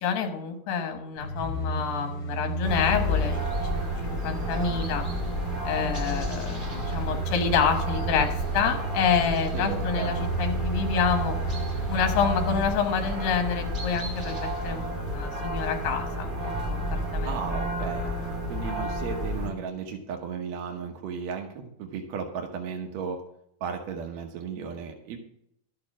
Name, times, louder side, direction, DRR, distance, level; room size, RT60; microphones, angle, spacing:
voice 1, 0.0-5.0 5.6-11.4 11.9-16.8 17.1-17.5, left 6 dB, 70° left, 5 dB, 3.0 m, -28 dB
sound 1, 1.2-12.8 13.1-13.2, right 2 dB, 45° left, 2.2 m, -33 dB
sound 2, 2.6-19.5, equal, 20° right, 1.5 m, -31 dB
voice 2, 9.5-10.2 17.2-18.2 18.5-23.2 23.6-25.2, right 6 dB, 65° right, 2 dB, 1.8 m, -35 dB
12.5 x 6.8 x 6.1 m, 0.74 s
omnidirectional pair, 4.4 m